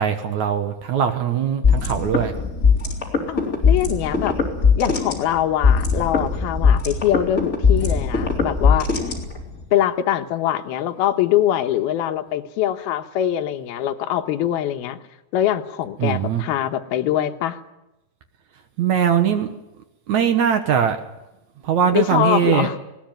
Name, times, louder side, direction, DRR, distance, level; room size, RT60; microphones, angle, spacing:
voice 1, 0.0-2.4 16.0-16.4 18.8-19.5 20.1-21.0 21.6-22.7, right 8 dB, 60° right, 8 dB, 2.1 m, -20 dB
sound 1, 1.6-9.6, left 5 dB, 20° left, 3.6 m, -20 dB
voice 2, 3.3-4.4 4.8-8.9 9.7-15.0 15.3-17.6 21.9-22.8, left 11 dB, 75° left, 7 dB, 3.0 m, -23 dB
20.0 x 19.0 x 9.2 m, 0.96 s
omnidirectional pair, 4.6 m